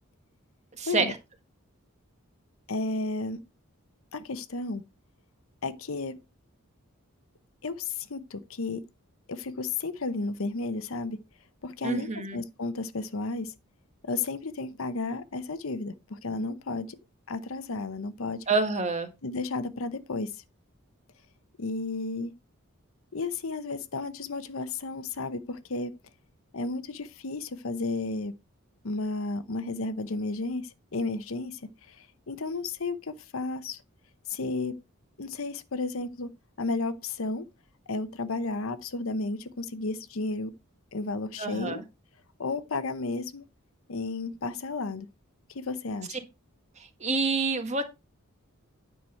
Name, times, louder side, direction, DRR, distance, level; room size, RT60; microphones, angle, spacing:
voice 1, 0.8-1.2 11.8-12.4 18.5-19.1 41.4-41.8 46.1-46.2 46.8-47.8, right 3 dB, 30° right, 1.6 m, -28 dB
voice 2, 2.7-3.4 4.1-4.8 5.6-6.2 7.6-8.8 9.3-11.2 11.6-13.5 14.0-17.0 17.3-18.4 19.2-20.3 21.6-22.3 23.1-25.9 26.5-28.3 28.8-31.6 31.9-33.8 34.3-34.8 35.2-36.3 36.6-37.4 37.9-40.5 40.9-41.8 42.4-43.4 43.9-45.1 45.5-46.2, left 3 dB, 70° left, 0.8 m, -33 dB
9.7 x 6.1 x 4.3 m
head